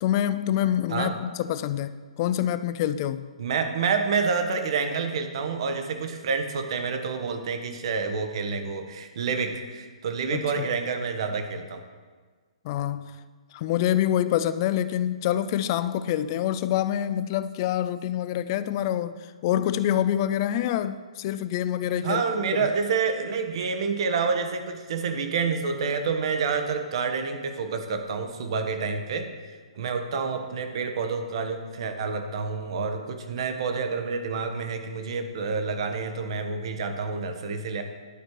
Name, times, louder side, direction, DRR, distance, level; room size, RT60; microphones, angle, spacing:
voice 1, 0.0-3.3 10.3-10.4 12.6-13.1 13.5-19.1 19.4-22.2 22.6-22.7, left 11 dB, 40° left, 0.4 m, -26 dB
voice 2, 3.4-11.8 22.0-29.3 29.8-37.8, right 5 dB, 55° right, 1.0 m, -28 dB
11.0 x 4.5 x 4.6 m
figure-of-eight pair, 125°, 4 cm